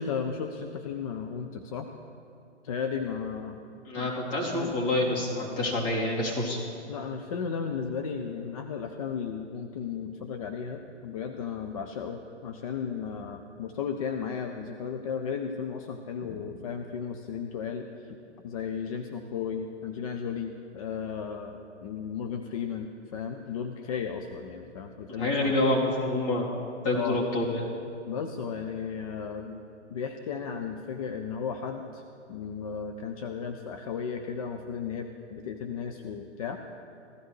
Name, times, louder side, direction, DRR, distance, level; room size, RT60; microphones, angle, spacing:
voice 1, 0.0-1.9 2.6-3.6 4.0-4.1 4.4-4.7 6.9-18.2 18.4-25.5 26.9-27.2 28.1-29.6 29.9-32.0 32.3-36.6, left 6 dB, 30° left, 6 dB, 0.4 m, -35 dB
voice 2, 3.8-6.6 25.2-26.5 26.8-27.6, left 2 dB, 45° left, -5 dB, 3.2 m, -27 dB
15.5 x 12.5 x 3.1 m, 2.6 s
hypercardioid pair, 130°, 36 cm